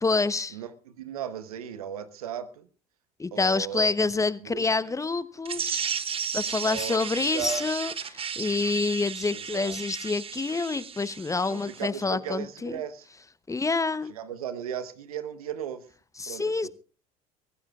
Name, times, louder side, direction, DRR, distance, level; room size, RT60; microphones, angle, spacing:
voice 1, 0.0-0.6 3.2-5.8 6.3-12.8 13.5-14.1 16.2-16.7, left 3 dB, 15° left, 0.8 m, -27 dB
voice 2, 0.5-2.7 3.3-4.9 6.6-7.7 9.3-9.8 11.5-13.1 14.1-15.9 16.3-16.7, right 9 dB, 80° right, 1.2 m, -36 dB
sound 1, 5.4-11.9, right 7 dB, 30° right, 0.9 m, -34 dB
23.5 x 15.0 x 2.4 m
hypercardioid pair, 65°, 18 cm